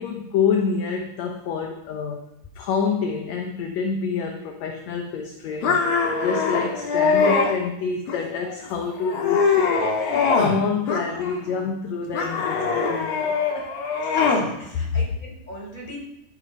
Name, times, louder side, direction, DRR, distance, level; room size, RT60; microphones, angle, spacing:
voice 1, 0.0-2.2 2.6-13.7, left 6 dB, 65° left, 3 dB, 1.9 m, -27 dB
sound 1, 5.6-7.5 8.1-8.6 9.0-10.6 10.9-11.6 12.1-14.5, left 4 dB, 85° left, 3.6 m, -22 dB
voice 2, 14.0-16.0, left 1 dB, 10° left, -3 dB, 5.0 m, -39 dB
14.0 x 8.1 x 5.4 m, 0.85 s
omnidirectional pair, 4.0 m